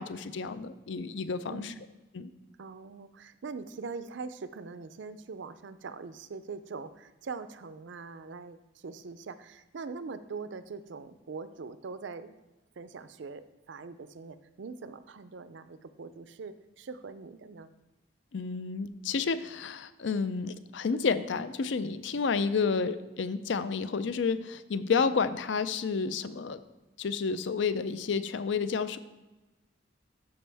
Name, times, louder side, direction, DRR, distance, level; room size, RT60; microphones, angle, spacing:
voice 1, 0.0-1.7 2.1-2.3 18.3-26.6 27.0-29.0, left 5 dB, 65° left, 13 dB, 0.4 m, -30 dB
voice 2, 1.5-1.9 2.6-12.4 12.8-17.7, right 4 dB, 65° right, 13 dB, 0.4 m, -42 dB
12.5 x 5.3 x 3.4 m, 1.1 s
head